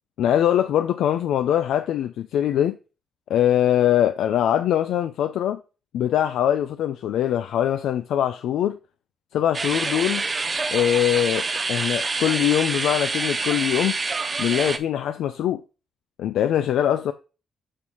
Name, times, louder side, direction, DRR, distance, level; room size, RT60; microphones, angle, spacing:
voice 1, 0.2-2.8 3.3-5.6 5.9-8.8 9.3-10.3 10.7-14.0 14.4-15.6 16.2-17.1, left 11 dB, 80° left, 0.4 m, -22 dB
sound 1, 9.5-14.8, right 3 dB, 20° right, 0.4 m, -26 dB
6.6 x 5.5 x 3.0 m
cardioid pair, 165°, 0 cm